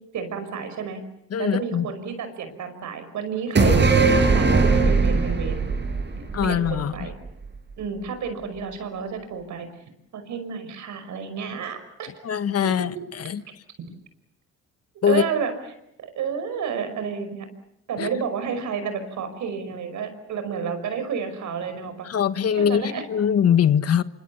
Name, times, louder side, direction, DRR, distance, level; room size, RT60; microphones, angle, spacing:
voice 1, 0.1-1.0 1.4-5.7 6.4-7.1 7.8-12.1 12.6-13.0 15.0-15.5 16.0-17.5 17.9-22.1 22.5-23.1, right 6 dB, 75° right, 5.6 m, -31 dB
voice 2, 1.3-1.9 6.3-6.9 12.2-13.4 15.0-15.2 18.0-18.1 22.0-24.0, left 8 dB, 55° left, 1.3 m, -22 dB
sound 1, 3.6-7.1 7.5-7.6, right 4 dB, 35° right, 5.7 m, -19 dB
27.0 x 25.0 x 7.2 m
cardioid pair, 90°, 30 cm